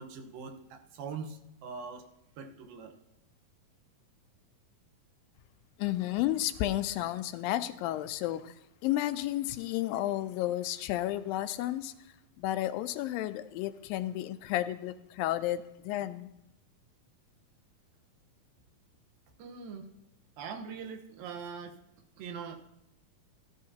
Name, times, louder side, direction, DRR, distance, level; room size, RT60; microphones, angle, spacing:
voice 1, 0.0-2.1 2.4-3.0 19.4-19.9 20.4-21.8 22.2-22.6, right 5 dB, 80° right, 5 dB, 2.9 m, -42 dB
voice 2, 5.8-8.5 8.8-11.9 12.4-16.3, left 14 dB, 85° left, 11 dB, 2.2 m, -32 dB
14.5 x 13.5 x 2.8 m, 0.83 s
omnidirectional pair, 4.2 m